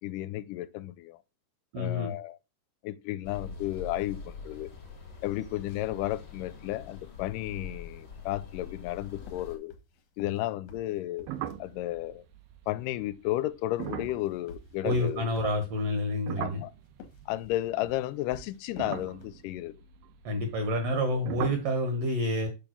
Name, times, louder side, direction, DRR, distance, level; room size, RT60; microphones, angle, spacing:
voice 1, 0.0-1.2 1.8-2.4 2.8-4.7 5.2-9.7 10.2-11.3 11.6-12.3 12.7-15.5 16.4-16.7 17.3-19.8, left 15 dB, 85° left, 2.1 m, -33 dB
voice 2, 1.7-2.1 14.8-16.6 20.2-22.5, left 1 dB, 60° right, 1.9 m, -28 dB
sound 1, 3.2-9.6, left 5 dB, 40° left, 2.0 m, -44 dB
sound 2, 9.2-11.8 13.5-16.0 16.9-19.5, left 4 dB, 60° left, 2.1 m, -47 dB
sound 3, 11.3-15.6 15.9-18.1 18.7-21.0 21.3-21.8, right 11 dB, 80° right, 2.2 m, -41 dB
6.6 x 3.5 x 5.9 m
omnidirectional pair, 3.7 m